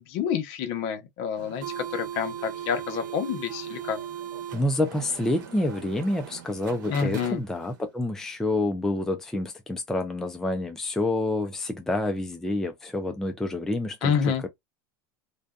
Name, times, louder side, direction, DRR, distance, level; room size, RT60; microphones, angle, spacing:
voice 1, 0.0-4.0 6.9-7.4 14.0-14.5, left 7 dB, 60° left, 0.8 m, -28 dB
sound 1, 1.4-7.8, right 9 dB, 90° right, 0.8 m, -39 dB
voice 2, 4.5-14.1, left 1 dB, 5° left, 0.4 m, -28 dB
2.6 x 2.2 x 2.3 m
supercardioid pair, 130°, 10 cm